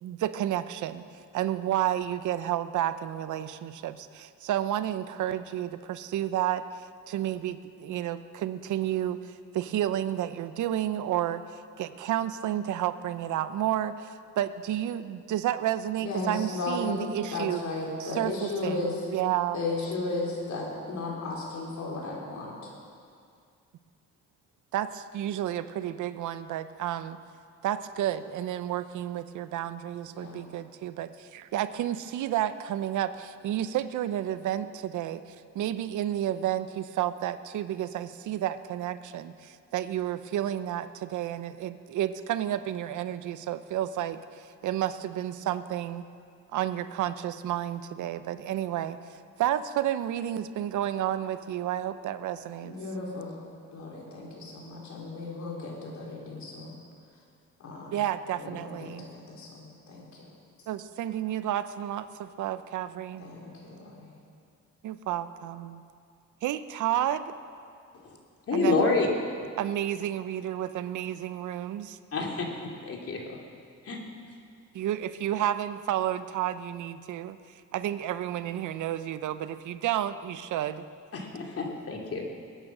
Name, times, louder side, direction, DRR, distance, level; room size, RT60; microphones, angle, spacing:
voice 1, 0.0-1.0 1.3-6.6 7.1-9.2 9.5-11.4 11.8-17.6 18.0-19.6 24.7-27.2 27.6-35.2 35.5-46.0 46.5-49.0 49.4-52.7 57.9-59.1 60.7-63.3 64.8-65.8 66.4-67.3 68.5-68.9 69.6-72.0 74.7-77.4 77.7-80.9, right 12 dB, 75° right, 12 dB, 0.7 m, -31 dB
voice 2, 16.0-18.9 19.5-22.7 30.1-30.4 52.6-53.3 53.7-56.7 57.6-58.0 58.3-60.2 63.2-64.1, left 3 dB, 65° left, -2 dB, 4.3 m, -35 dB
voice 3, 68.5-69.1 72.1-73.2 73.8-74.0 81.1-82.2, left 4 dB, 50° left, 0 dB, 2.9 m, -28 dB
21.5 x 9.1 x 6.1 m, 2.3 s
cardioid pair, 90°, 30 cm